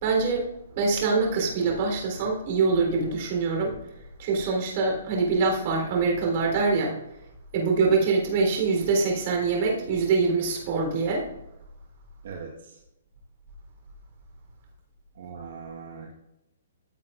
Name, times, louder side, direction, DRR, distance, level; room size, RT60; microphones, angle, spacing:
voice 1, 0.0-0.5 0.7-3.8 4.2-7.0 7.5-11.3, right 4 dB, 40° right, 0 dB, 3.7 m, -24 dB
voice 2, 12.2-12.8 15.2-16.1, right 5 dB, 65° right, -1 dB, 1.4 m, -40 dB
15.5 x 7.6 x 2.5 m, 0.88 s
hypercardioid pair, 155°, 0 cm